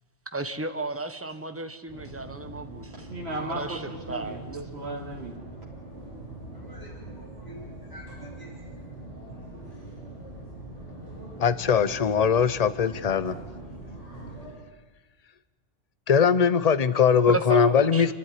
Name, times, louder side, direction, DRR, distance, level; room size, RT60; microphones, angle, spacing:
voice 1, 0.3-3.1 3.4-4.4 17.3-18.1, right 2 dB, 10° right, 9 dB, 1.1 m, -33 dB
sound 1, 1.9-14.5, right 2 dB, 85° left, 8.2 m, -42 dB
voice 2, 2.9-5.4, right 1 dB, 65° right, -2 dB, 2.7 m, -36 dB
voice 3, 6.5-8.5, equal, 15° left, -3 dB, 7.2 m, -48 dB
voice 4, 11.4-13.4 16.1-18.1, left 6 dB, 35° left, 14 dB, 0.8 m, -21 dB
29.5 x 11.5 x 9.9 m, 1.3 s
omnidirectional pair, 1.2 m